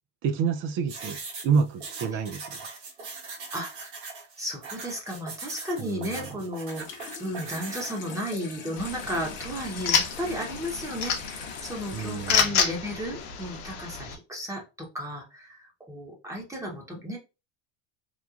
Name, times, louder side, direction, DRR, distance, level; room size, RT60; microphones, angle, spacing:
voice 1, 0.2-2.6 5.8-6.4 11.9-12.5, right 6 dB, 35° right, 0.4 m, -28 dB
sound 1, 0.9-8.0, right 4 dB, 80° right, 1.4 m, -40 dB
voice 2, 4.4-17.2, equal, 10° right, 0.9 m, -34 dB
Water tap faucet / Sink (filling or washing), 6.6-13.6, left 6 dB, 30° left, 0.8 m, -43 dB
sound 2, 8.8-14.1, left 7 dB, 60° left, 0.9 m, -29 dB
3.0 x 2.2 x 2.4 m
supercardioid pair, 105°, 36 cm